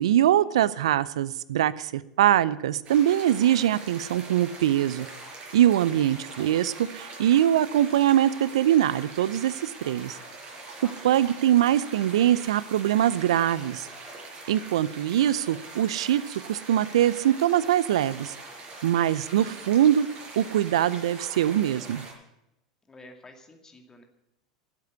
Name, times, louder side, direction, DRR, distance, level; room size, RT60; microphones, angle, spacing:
voice 1, 0.0-5.1 5.5-10.2 11.0-13.9 14.5-18.3 18.8-20.1 20.4-22.0, right 11 dB, 75° right, 18 dB, 0.5 m, -23 dB
sound 1, 2.8-22.1, right 3 dB, 45° right, 5.5 m, -43 dB
voice 2, 10.8-11.2 19.0-19.7 22.9-24.0, left 2 dB, 20° left, 4 dB, 2.3 m, -50 dB
11.5 x 8.2 x 9.7 m, 0.86 s
hypercardioid pair, 85°, 3 cm